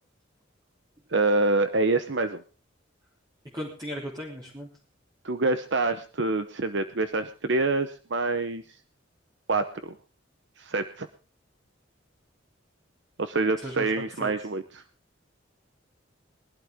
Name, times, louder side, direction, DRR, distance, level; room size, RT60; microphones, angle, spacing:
voice 1, 1.1-2.4 5.2-8.6 9.5-9.9 10.6-11.1 13.2-14.8, right 3 dB, 60° right, 10 dB, 0.9 m, -26 dB
voice 2, 3.5-4.7 13.6-13.9 14.1-14.3, equal, 20° right, -4 dB, 3.2 m, -36 dB
22.0 x 12.0 x 3.6 m, 0.38 s
head